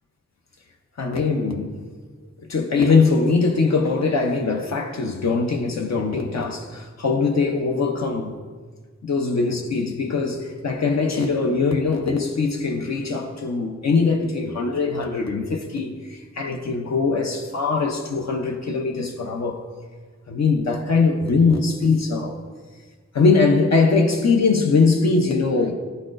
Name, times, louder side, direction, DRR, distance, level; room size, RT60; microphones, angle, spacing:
voice 1, 1.0-1.8 2.5-8.4 9.0-19.6 20.3-22.4 23.1-25.7, left 4 dB, 65° left, 0.6 m, -21 dB
12.0 x 4.1 x 2.5 m
wide cardioid pair, 130°, 29 cm